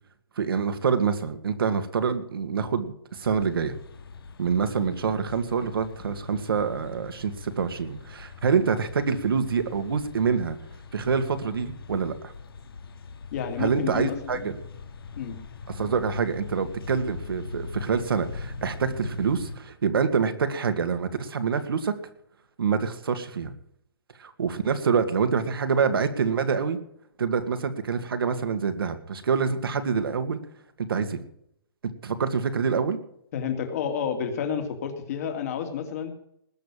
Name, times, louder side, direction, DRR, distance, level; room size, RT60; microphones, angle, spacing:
voice 1, 0.4-3.7 4.4-10.6 10.9-12.3 13.6-14.6 15.7-22.0 22.6-23.5 24.2-26.8 27.2-30.4 30.8-31.2 32.0-33.0, right 6 dB, 70° right, 9 dB, 2.4 m, -26 dB
sound 1, 3.2-19.6, left 4 dB, 70° left, 2.6 m, -42 dB
voice 2, 13.3-14.5 15.2-15.4 33.3-36.1, left 7 dB, 40° left, 6 dB, 2.7 m, -30 dB
20.0 x 7.0 x 8.5 m, 0.72 s
hypercardioid pair, 160°, 13 cm